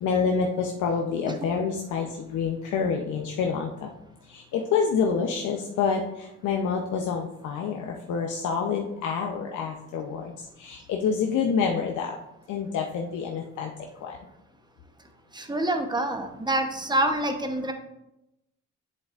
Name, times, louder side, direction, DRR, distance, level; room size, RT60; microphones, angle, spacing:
voice 1, 0.0-3.9 4.3-12.2 12.5-13.7 14.0-14.2, left 6 dB, 75° left, 1 dB, 0.8 m, -27 dB
voice 2, 15.3-17.7, right 1 dB, 15° right, 5 dB, 0.9 m, -26 dB
7.8 x 7.2 x 2.5 m, 0.87 s
cardioid pair, 90°, 30 cm